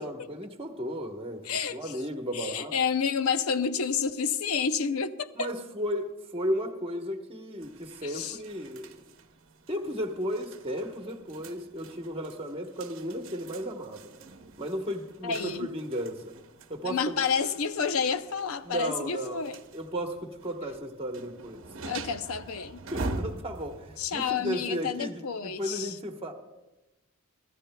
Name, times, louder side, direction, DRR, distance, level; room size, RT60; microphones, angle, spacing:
voice 1, 0.0-1.4 1.7-2.7 5.4-9.0 9.7-14.1 14.6-16.3 16.7-17.1 18.6-19.4 19.7-21.6 22.9-26.3, equal, 25° right, 1.1 m, -34 dB
voice 2, 1.4-2.0 2.3-5.5 8.0-8.4 15.2-15.7 16.8-19.6 21.8-22.8 24.0-26.0, left 6 dB, 80° left, 0.6 m, -30 dB
sound 1, 7.6-24.5, right 2 dB, 60° right, 0.9 m, -44 dB
24.5 x 13.0 x 2.3 m
head